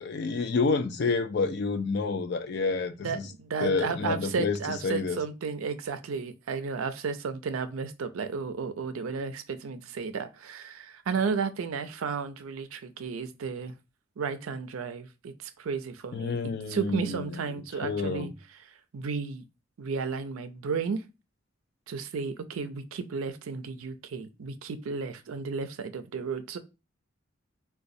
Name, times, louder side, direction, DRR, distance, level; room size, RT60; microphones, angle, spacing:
voice 1, 0.0-3.3 3.6-4.6 4.8-5.2 16.1-18.3, left 4 dB, 55° left, 0.4 m, -29 dB
voice 2, 3.0-13.7 14.2-18.3 18.9-19.4 19.8-21.0 21.9-26.6, right 5 dB, 80° right, 0.4 m, -33 dB
4.0 x 2.2 x 2.6 m
head